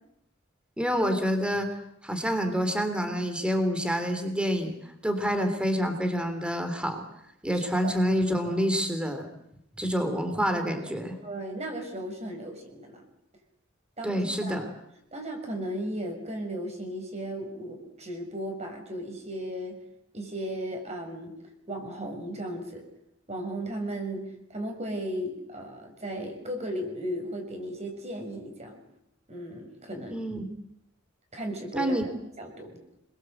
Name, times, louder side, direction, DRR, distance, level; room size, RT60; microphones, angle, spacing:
voice 1, 0.8-1.7 2.0-7.0 7.4-9.3 9.8-11.1 14.0-14.6 30.1-30.5 31.7-32.0, equal, 5° right, 7 dB, 3.1 m, -27 dB
voice 2, 7.5-7.9 11.2-13.0 14.0-14.7 15.1-19.8 20.1-21.3 21.7-22.8 23.3-28.8 29.3-30.2 31.3-32.1 32.4-32.8, right 1 dB, 35° right, 4 dB, 6.3 m, -36 dB
27.0 x 22.0 x 7.9 m, 0.79 s
head